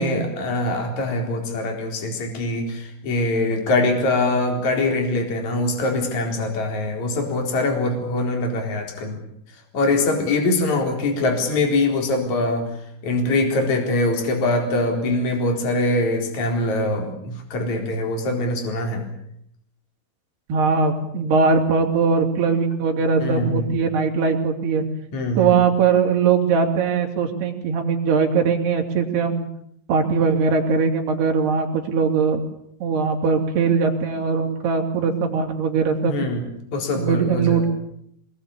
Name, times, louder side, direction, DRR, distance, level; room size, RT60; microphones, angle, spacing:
voice 1, 0.0-9.2 9.7-12.7 13.0-19.0 23.2-23.7 25.1-25.6 36.1-36.4 36.7-37.7, left 2 dB, 40° left, 3 dB, 5.1 m, -23 dB
voice 2, 20.5-24.8 25.4-29.5 29.9-32.4 32.8-36.2 36.9-37.7, right 5 dB, 60° right, 1 dB, 4.9 m, -20 dB
24.0 x 21.5 x 8.6 m, 0.73 s
omnidirectional pair, 5.4 m